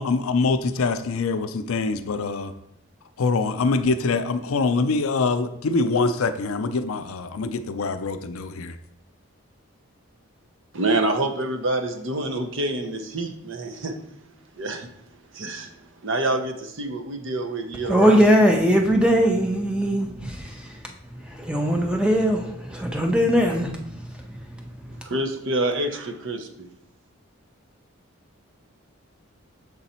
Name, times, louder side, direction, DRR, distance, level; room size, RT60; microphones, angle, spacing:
voice 1, 0.0-2.5 3.2-8.7, left 3 dB, 80° left, 10 dB, 0.5 m, -24 dB
voice 2, 10.7-13.9 14.6-14.9 15.4-15.7 16.0-18.2 25.1-26.5, right 2 dB, 60° right, 5 dB, 0.7 m, -26 dB
voice 3, 17.9-20.1 21.5-22.4 22.7-23.7, equal, 5° right, 2 dB, 0.6 m, -19 dB
6.9 x 4.0 x 4.2 m, 0.78 s
head